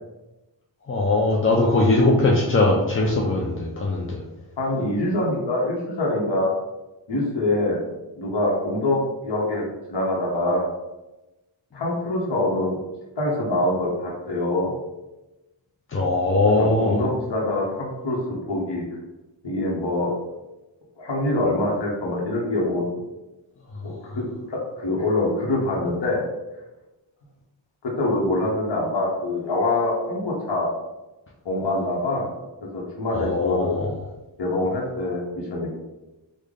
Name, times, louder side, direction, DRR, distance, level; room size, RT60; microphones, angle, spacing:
voice 1, 0.9-4.2 15.9-17.0 33.1-33.9, left 2 dB, 30° left, -2 dB, 0.4 m, -20 dB
voice 2, 4.6-6.5 7.1-7.9 8.1-10.7 11.7-12.8 13.2-14.7 16.6-18.8 19.4-20.1 21.0-23.1 23.8-26.2 27.8-30.7 31.4-32.3 32.7-33.8 34.4-35.7, left 2 dB, 60° left, -4 dB, 0.9 m, -25 dB
3.3 x 2.1 x 3.6 m, 1.0 s
wide cardioid pair, 80°, 47 cm